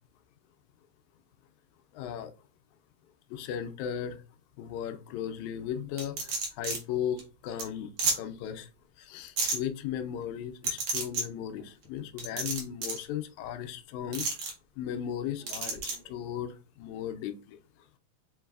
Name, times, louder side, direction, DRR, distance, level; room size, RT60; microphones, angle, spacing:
voice 1, 2.0-2.3 3.3-4.2 4.6-6.2 6.6-7.9 8.1-8.7 9.1-14.2 14.8-17.6, left 9 dB, 80° left, 9 dB, 1.8 m, -36 dB
sound 1, 6.0-6.8 7.2-7.3 7.6-7.7 8.0-8.2 9.4-9.6 10.6-11.2 12.2-13.0 14.1-14.5 15.5-15.9, right 3 dB, 60° right, 1.6 m, -30 dB
5.2 x 3.1 x 2.3 m, 0.34 s
omnidirectional pair, 3.5 m